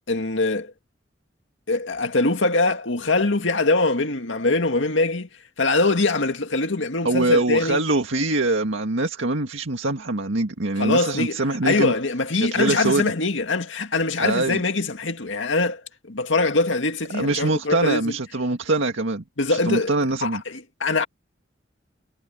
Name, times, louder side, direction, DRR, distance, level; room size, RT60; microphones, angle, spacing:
voice 1, 0.1-0.7 1.7-5.3 5.6-7.8 10.8-18.2 19.4-19.9 20.2-21.1, left 3 dB, 80° left, 2.2 m, -23 dB
voice 2, 7.0-11.9 12.5-13.1 14.2-14.6 17.1-19.2 19.5-20.4, right 2 dB, 85° right, 1.9 m, -23 dB
head